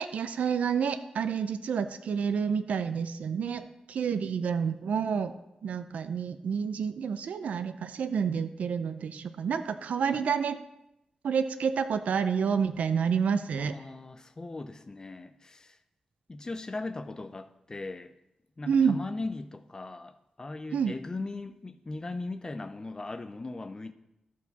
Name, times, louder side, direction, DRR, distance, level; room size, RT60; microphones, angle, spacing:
voice 1, 0.0-5.3 5.6-10.6 11.2-13.7 18.7-19.0 20.7-20.9, right 6 dB, 90° right, 11 dB, 0.5 m, -29 dB
voice 2, 13.5-15.8 16.3-18.1 18.6-23.9, left 2 dB, 30° left, 10 dB, 0.6 m, -39 dB
13.0 x 4.6 x 4.1 m, 0.86 s
wide cardioid pair, 90°, 2 cm